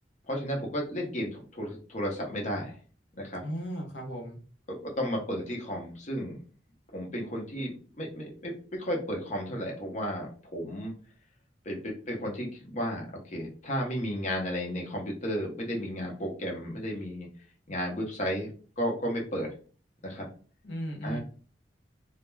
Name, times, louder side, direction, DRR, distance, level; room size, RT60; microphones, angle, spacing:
voice 1, 0.3-2.8 3.1-3.4 4.7-6.4 6.9-10.9 11.6-17.3 17.7-19.5 20.0-20.3 21.0-21.2, equal, 40° left, 0 dB, 0.7 m, -33 dB
voice 2, 3.4-4.4 20.6-21.2, equal, 80° left, 2 dB, 0.6 m, -36 dB
2.2 x 2.1 x 3.1 m, 0.40 s
head